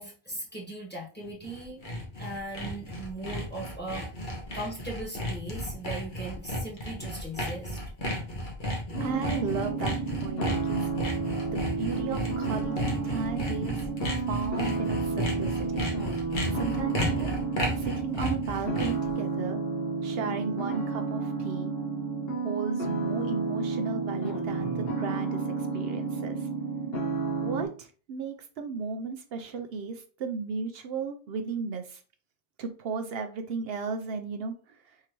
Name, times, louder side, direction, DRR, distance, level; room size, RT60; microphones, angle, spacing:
voice 1, 0.0-1.8 2.2-7.8, right 1 dB, 10° left, -2 dB, 1.4 m, -39 dB
Sawing, 1.3-19.1, equal, 50° left, 1.3 m, -33 dB
sound 1, 8.9-27.7, right 4 dB, 70° left, 1.6 m, -31 dB
voice 2, 9.0-10.9 11.5-13.9 14.1-15.9 16.5-17.3 17.8-19.6 20.0-21.7 22.4-26.5 27.4-32.0 32.6-35.1, right 5 dB, 75° right, 6 dB, 0.8 m, -35 dB
4.6 x 3.8 x 3.0 m, 0.38 s
omnidirectional pair, 1.1 m